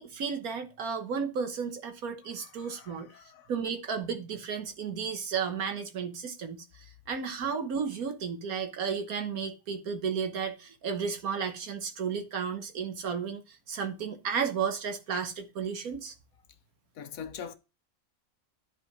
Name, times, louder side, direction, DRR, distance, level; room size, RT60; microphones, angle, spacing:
voice 1, 0.0-3.1 3.5-16.1, right 6 dB, 70° right, 1.5 m, -33 dB
voice 2, 2.2-3.5 16.9-17.6, left 7 dB, 70° left, 1.2 m, -44 dB
10.5 x 4.3 x 5.8 m
omnidirectional pair, 1.6 m